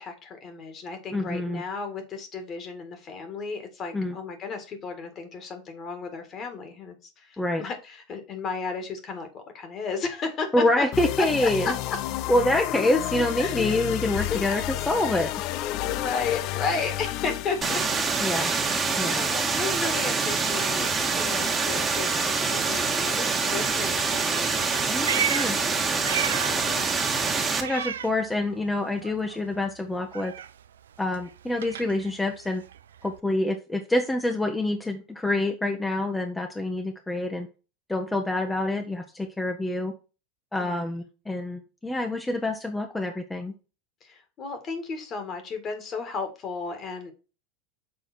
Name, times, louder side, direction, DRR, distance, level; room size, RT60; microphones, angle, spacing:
voice 1, 0.0-10.8 11.2-11.3 11.6-12.0 13.4-13.5 14.3-14.4 15.8-18.0 18.3-24.6 24.9-25.2 25.9-26.9 40.6-41.0 44.0-47.1, left 4 dB, 40° left, 7 dB, 1.8 m, -34 dB
voice 2, 1.1-1.6 3.9-4.2 7.4-7.6 10.5-11.7 12.3-15.3 18.2-18.5 19.0-19.2 24.9-25.6 27.6-30.3 31.0-32.6 33.0-37.5 37.9-39.9 40.5-43.5, left 1 dB, 10° left, 3 dB, 0.9 m, -26 dB
sound 1, 10.9-18.0, left 15 dB, 55° left, 0.4 m, -31 dB
sound 2, 17.6-27.6, right 4 dB, 20° right, 1.4 m, -25 dB
Meow, 24.6-26.7 27.0-28.8 29.0-33.2, right 9 dB, 80° right, 0.3 m, -34 dB
6.6 x 3.8 x 4.3 m, 0.32 s
hypercardioid pair, 95°, 0 cm